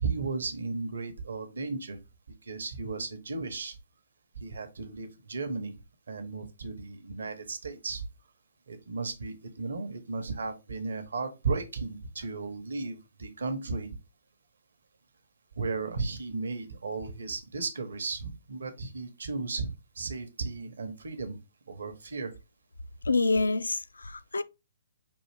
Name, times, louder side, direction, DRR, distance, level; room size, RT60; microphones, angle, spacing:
voice 1, 0.0-2.0 2.4-3.8 4.4-5.7 6.1-8.1 8.7-13.9 15.6-21.4 21.7-22.3, right 4 dB, 70° right, 0.8 m, -35 dB
voice 2, 23.0-24.4, left 3 dB, 80° left, 0.4 m, -27 dB
5.3 x 2.5 x 3.3 m
figure-of-eight pair, 130°, 0 cm